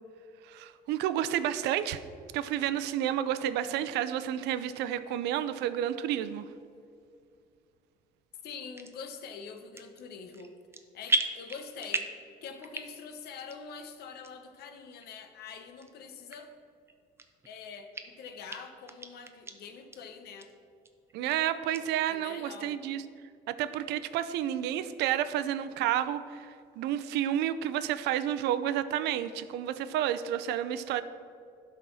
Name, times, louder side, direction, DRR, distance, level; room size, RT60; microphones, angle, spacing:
voice 1, 0.5-2.0 2.3-6.5 21.1-23.0 23.5-31.0, right 11 dB, 90° right, 13 dB, 0.5 m, -30 dB
voice 2, 8.4-10.5 10.9-12.1 12.4-16.5 17.4-20.5 22.1-22.8, left 5 dB, 70° left, 6 dB, 1.0 m, -45 dB
sound 1, 8.7-8.9 9.6-10.0 10.3-10.8 11.1-12.2 12.6-13.1 13.5-13.6 14.2-14.3 15.0-15.1 15.8-15.9 16.3-16.4 16.9-17.5 17.9-18.0 18.5-18.6 18.9-19.5 19.9-20.0 20.4-20.5 20.8-21.3 21.7-21.8, right 2 dB, 15° right, 0.7 m, -33 dB
11.5 x 4.2 x 6.2 m, 2.4 s
cardioid pair, 110°, 17 cm